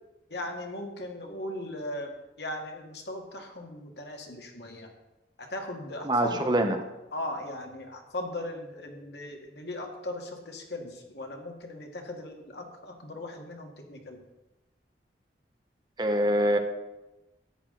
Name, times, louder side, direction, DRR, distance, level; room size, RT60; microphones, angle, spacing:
voice 1, 0.3-4.9 5.4-6.6 7.1-14.2, left 1 dB, 75° left, 2 dB, 1.9 m, -38 dB
voice 2, 6.0-6.8 16.0-16.6, right 1 dB, 25° right, 6 dB, 0.9 m, -24 dB
13.5 x 9.5 x 3.9 m, 0.99 s
head